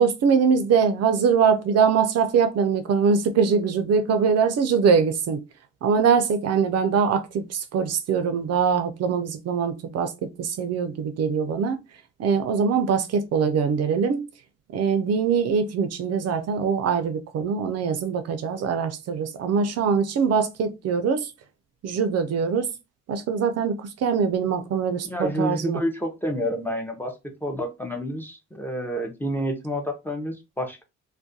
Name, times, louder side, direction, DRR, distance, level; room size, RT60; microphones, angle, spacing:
voice 1, 0.0-5.4 5.8-10.1 10.4-11.8 12.2-14.2 14.7-21.3 21.8-22.7 23.1-25.8, right 6 dB, 60° right, 0.4 m, -22 dB
voice 2, 25.1-27.1 27.4-30.8, equal, 5° left, 0.5 m, -29 dB
2.3 x 2.1 x 2.6 m
cardioid pair, 90°, 30 cm